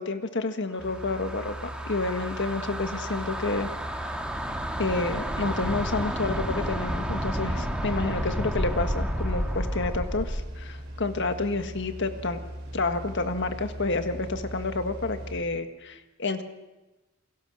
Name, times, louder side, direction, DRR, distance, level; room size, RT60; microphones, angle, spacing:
voice 1, 0.0-3.7 4.1-4.2 4.8-12.4 12.7-16.4, left 3 dB, 60° left, 8 dB, 1.7 m, -29 dB
sound 1, 0.8-10.6, equal, 5° right, 2.3 m, -31 dB
sound 2, 0.8-15.4, equal, 55° right, 5.7 m, -40 dB
29.0 x 22.0 x 6.6 m, 1.1 s
head